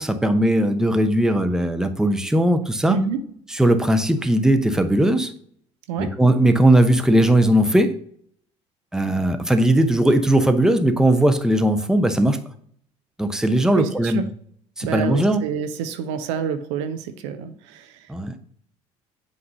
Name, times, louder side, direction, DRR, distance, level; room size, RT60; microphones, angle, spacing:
voice 1, 0.0-3.0 3.5-5.3 6.0-7.9 8.9-12.4 13.2-14.2 14.8-15.4 18.1-18.3, right 1 dB, 5° right, 7 dB, 0.7 m, -18 dB
voice 2, 2.9-3.2 5.9-6.1 13.7-14.2 14.8-17.9, right 7 dB, 80° right, 8 dB, 0.6 m, -27 dB
7.8 x 2.7 x 5.4 m, 0.63 s
hypercardioid pair, 60°, 15 cm